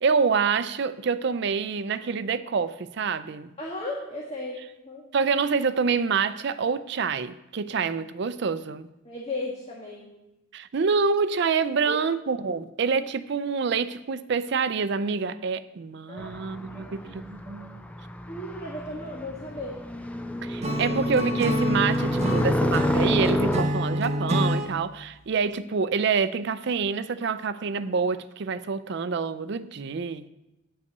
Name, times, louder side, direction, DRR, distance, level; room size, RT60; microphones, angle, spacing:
voice 1, 0.0-3.5 5.1-8.9 10.5-17.8 20.4-30.3, right 5 dB, 55° right, 13 dB, 0.4 m, -27 dB
voice 2, 3.6-5.0 9.0-10.1 11.8-12.0 16.1-16.3 16.7-17.0 17.6-17.7 18.3-19.8 20.8-21.0, left 1 dB, 35° left, -3 dB, 1.4 m, -35 dB
sound 1, 16.2-23.6, left 1 dB, 5° left, 0.4 m, -29 dB
Acoustic guitar / Strum, 20.6-24.7, equal, 35° right, 0.8 m, -27 dB
9.5 x 5.5 x 6.7 m, 0.94 s
head